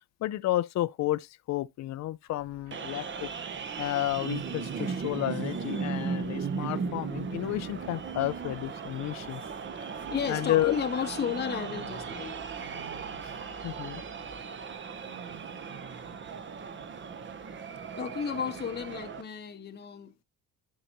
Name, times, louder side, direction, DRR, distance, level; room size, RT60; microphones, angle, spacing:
voice 1, 0.2-3.3 3.8-9.4 9.8-9.9 10.3-10.8 13.2-13.3 13.6-14.0, left 15 dB, 50° left, 0.5 m, -31 dB
sound 1, 2.3-14.4, right 2 dB, 55° right, 3.4 m, -56 dB
sound 2, 2.7-19.2, right 5 dB, 30° right, 0.9 m, -37 dB
sound 3, 7.3-8.7 11.0-12.2 12.5-13.2 15.0-16.2, right 7 dB, 85° right, 2.2 m, -51 dB
voice 2, 9.9-12.4 18.0-20.2, left 7 dB, 30° left, 0.9 m, -33 dB
11.0 x 4.0 x 3.0 m
cardioid pair, 115°, 36 cm